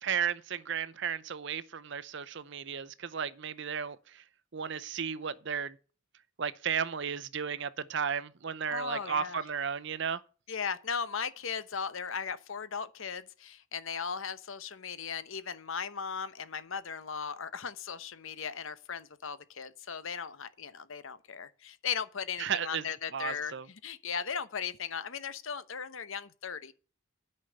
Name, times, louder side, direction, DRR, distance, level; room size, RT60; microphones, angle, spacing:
voice 1, 0.0-4.2 4.5-5.8 6.4-10.2 22.4-22.8 23.1-23.7, right 7 dB, 55° right, 0.6 m, -34 dB
voice 2, 8.7-9.4 10.5-26.7, left 6 dB, 65° left, 0.9 m, -37 dB
9.6 x 5.5 x 7.9 m
head